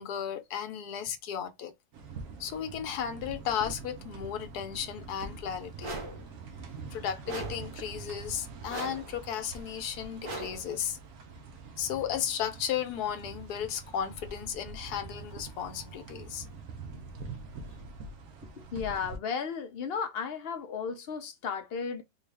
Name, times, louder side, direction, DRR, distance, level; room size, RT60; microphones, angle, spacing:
voice 1, 0.0-1.7 2.4-5.9 6.9-11.0 11.8-16.5, left 9 dB, 90° left, 1.3 m, -34 dB
sound 1, 1.9-19.2, right 4 dB, 75° right, 1.2 m, -44 dB
sound 2, 5.8-6.3 7.3-7.7 8.7-9.2 10.2-10.7, right 2 dB, 40° right, 1.1 m, -39 dB
voice 2, 18.6-22.0, left 6 dB, 65° left, 0.6 m, -34 dB
3.8 x 2.4 x 3.4 m
omnidirectional pair, 1.6 m